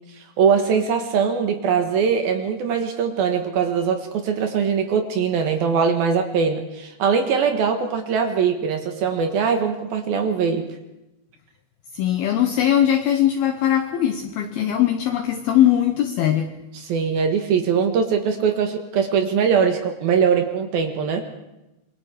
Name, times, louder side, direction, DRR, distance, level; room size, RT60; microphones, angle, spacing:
voice 1, 0.2-10.7 16.7-21.3, right 6 dB, 65° right, 6 dB, 2.6 m, -21 dB
voice 2, 12.0-16.5, left 11 dB, 85° left, 6 dB, 2.1 m, -20 dB
26.5 x 22.5 x 4.9 m, 0.92 s
omnidirectional pair, 5.9 m